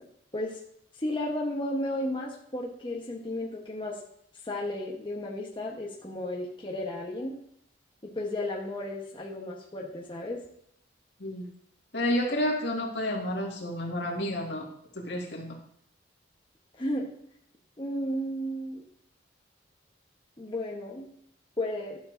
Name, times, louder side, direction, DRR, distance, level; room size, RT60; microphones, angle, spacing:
voice 1, 1.0-4.0 4.4-7.4 8.1-10.4 16.8-17.1 17.8-18.8 20.4-21.1 21.6-22.0, left 1 dB, 25° left, -3 dB, 1.1 m, -33 dB
voice 2, 11.9-14.7 15.0-15.5, left 1 dB, 70° left, -1 dB, 2.0 m, -30 dB
11.5 x 7.1 x 2.6 m, 0.69 s
head